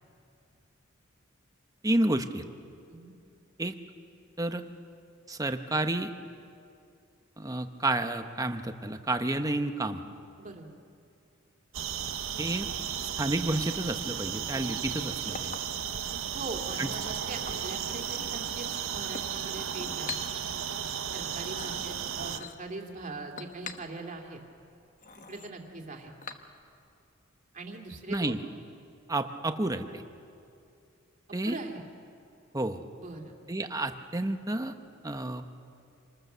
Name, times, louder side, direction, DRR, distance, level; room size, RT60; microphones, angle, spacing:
voice 1, 1.8-2.4 3.6-3.7 4.4-4.6 5.3-6.1 7.4-10.0 12.4-12.7 13.2-15.6 16.8-16.9 28.1-28.4 29.1-30.0 31.3-31.6 32.5-32.8 33.5-34.7 35.0-35.5, right 1 dB, 15° right, 7 dB, 0.9 m, -30 dB
sound 1, 11.7-22.4, right 8 dB, 80° right, 1.0 m, -34 dB
Chink clink, 14.8-26.9, left 5 dB, 40° left, 1.1 m, -47 dB
voice 2, 16.1-20.2 21.1-24.4 25.3-26.1 27.5-28.4 31.4-31.8 33.0-33.3, right 2 dB, 40° right, 2 dB, 2.5 m, -41 dB
27.0 x 20.5 x 6.8 m, 2.5 s
head